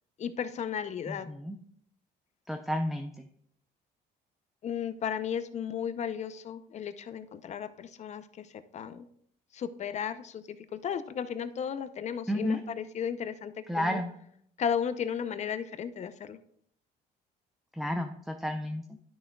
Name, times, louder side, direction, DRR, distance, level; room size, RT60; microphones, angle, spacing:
voice 1, 0.2-1.3 4.6-9.1 9.5-14.0 14.6-16.4, left 8 dB, 45° left, 11 dB, 0.5 m, -35 dB
voice 2, 1.1-1.6 2.5-3.1 12.3-12.6 13.7-14.1 17.8-18.8, left 1 dB, ahead, 4 dB, 0.5 m, -31 dB
11.0 x 6.1 x 2.3 m, 0.68 s
cardioid pair, 110°, 17 cm